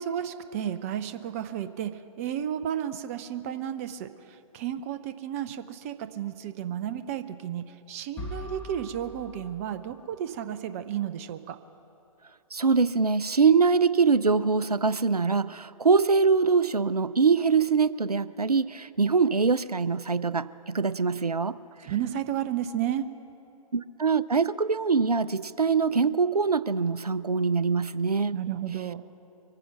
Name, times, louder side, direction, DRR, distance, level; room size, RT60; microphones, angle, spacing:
voice 1, 0.0-11.6 21.8-23.1 28.3-29.1, right 10 dB, 25° right, 11 dB, 0.4 m, -32 dB
sound 1, 8.2-10.2, left 2 dB, 10° left, 1.9 m, -42 dB
voice 2, 12.5-21.6 23.7-28.4, right 5 dB, 90° right, 17 dB, 0.4 m, -23 dB
23.0 x 9.8 x 5.8 m, 2.9 s
figure-of-eight pair, 125°, 19 cm